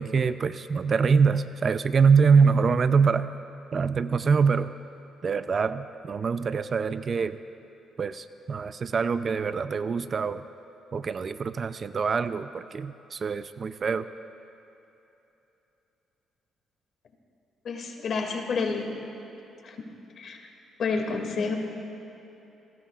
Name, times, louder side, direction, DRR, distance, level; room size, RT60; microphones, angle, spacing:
voice 1, 0.0-3.3 3.7-4.7 5.2-7.4 8.0-10.4 10.9-14.1, right 5 dB, 45° right, 12 dB, 0.5 m, -24 dB
voice 2, 17.6-18.9 19.6-19.8 20.2-20.5 20.8-21.6, left 4 dB, 60° left, 2 dB, 2.3 m, -29 dB
25.0 x 18.5 x 2.5 m, 3.0 s
cardioid pair, 90°, 0 cm